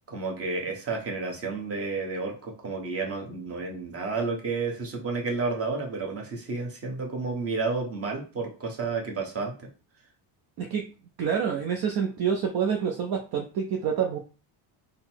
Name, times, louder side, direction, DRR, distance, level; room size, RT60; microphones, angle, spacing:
voice 1, 0.1-9.7, right 4 dB, 30° right, 1 dB, 1.0 m, -31 dB
voice 2, 11.2-14.2, right 7 dB, 50° right, 2 dB, 0.6 m, -27 dB
3.8 x 2.0 x 4.4 m, 0.35 s
cardioid pair, 150°, 48 cm